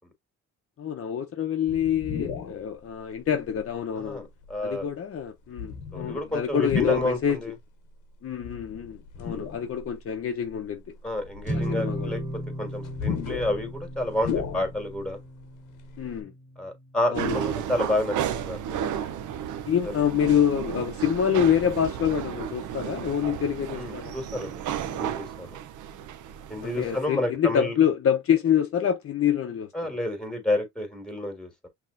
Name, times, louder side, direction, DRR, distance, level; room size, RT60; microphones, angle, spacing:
voice 1, 0.8-4.3 4.6-7.4 8.2-10.8 11.5-12.1 16.0-16.3 17.1-17.4 19.7-24.2 26.6-29.7, left 9 dB, 50° left, 0.8 m, -26 dB
sound 1, 1.7-2.6 3.3-3.4 4.4-4.8 5.5-7.3 8.4-9.9 10.5-10.6 11.2-15.1 15.4-15.5 15.7-16.2, left 7 dB, 85° left, 1.0 m, -33 dB
voice 2, 4.0-4.9 5.9-7.5 9.2-9.4 11.0-12.2 12.6-15.2 16.6-18.9 19.9-20.0 23.8-25.6 26.5-27.7 29.7-31.7, left 1 dB, ahead, 1.9 m, -30 dB
sound 2, 11.4-17.9, equal, 25° right, 1.9 m, -36 dB
sound 3, 17.2-27.1, right 9 dB, 80° right, 0.7 m, -33 dB
5.5 x 3.0 x 2.5 m
cardioid pair, 90°, 30 cm